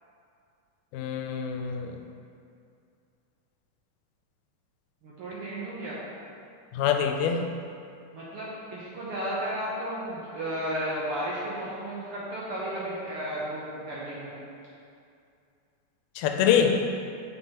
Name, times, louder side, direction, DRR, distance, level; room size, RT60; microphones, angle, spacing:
voice 1, 0.9-2.0 6.7-7.5 16.2-16.8, left 8 dB, 85° left, 4 dB, 2.1 m, -25 dB
voice 2, 5.0-6.0 8.1-14.4, right 1 dB, 85° right, -7 dB, 1.2 m, -33 dB
7.6 x 5.5 x 2.9 m, 2.4 s
omnidirectional pair, 3.7 m